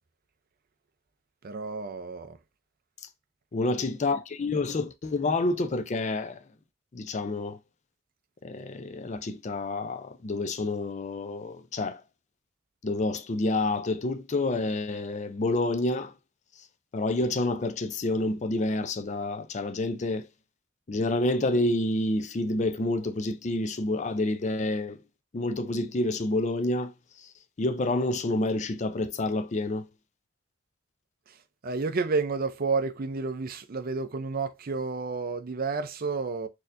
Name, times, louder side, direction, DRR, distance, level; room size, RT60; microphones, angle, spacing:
voice 1, 1.4-2.4 31.6-36.5, right 4 dB, 45° right, 0.5 m, -30 dB
voice 2, 3.5-6.4 6.9-7.6 8.4-12.0 12.8-16.1 16.9-20.3 20.9-25.0 25.3-26.9 27.6-29.9, left 2 dB, 35° left, 0.4 m, -28 dB
4.2 x 2.7 x 2.5 m
head